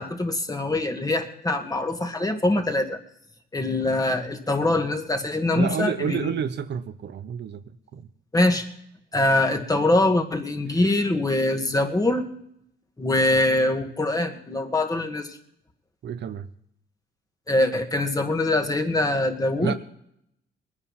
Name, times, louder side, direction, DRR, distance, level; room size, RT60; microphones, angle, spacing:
voice 1, 0.0-3.0 3.5-6.3 8.3-8.7 9.1-12.3 13.0-15.3 17.5-19.8, left 2 dB, 20° left, 4 dB, 2.1 m, -23 dB
voice 2, 5.5-7.6 7.9-8.1 16.0-16.5 19.6-19.7, right 8 dB, 60° right, 10 dB, 1.0 m, -29 dB
21.0 x 9.9 x 5.8 m, 0.74 s
cardioid pair, 90°, 20 cm